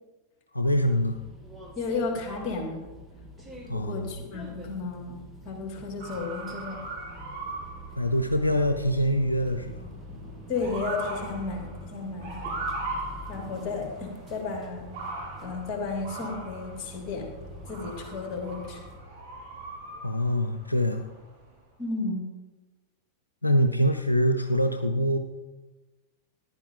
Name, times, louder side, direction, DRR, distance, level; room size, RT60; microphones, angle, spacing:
voice 1, 0.5-1.2 3.7-4.1 8.0-9.8 20.0-21.1 23.4-25.2, equal, 85° left, 7 dB, 0.6 m, -24 dB
sound 1, 0.6-19.0, left 1 dB, 5° right, 1.8 m, -45 dB
voice 2, 1.8-2.8 3.7-5.2 5.4-6.8 10.5-12.6 13.3-14.9 15.4-17.3 17.7-18.8 21.8-22.2, left 4 dB, 30° left, 2 dB, 2.8 m, -33 dB
Motor vehicle (road) / Siren, 6.0-21.6, right 3 dB, 50° right, 4.6 m, -40 dB
14.5 x 10.5 x 3.8 m, 1.2 s
figure-of-eight pair, 90°, 0 cm